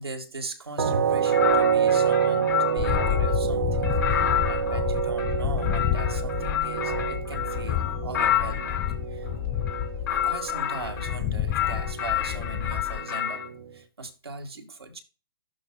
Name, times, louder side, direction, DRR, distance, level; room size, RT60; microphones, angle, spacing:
voice 1, 0.0-4.2 4.5-8.8 9.1-9.4 10.2-13.4 13.7-15.0, right 3 dB, 85° right, 1.9 m, -39 dB
sound 1, 0.8-13.8, right 8 dB, 70° right, 1.3 m, -28 dB
sound 2, 1.3-3.4 3.8-8.9 9.6-11.2 11.5-13.5, left 11 dB, 55° left, 1.7 m, -29 dB
sound 3, 2.8-13.0, left 12 dB, 25° left, 0.4 m, -30 dB
12.5 x 4.7 x 2.3 m
figure-of-eight pair, 120°, 13 cm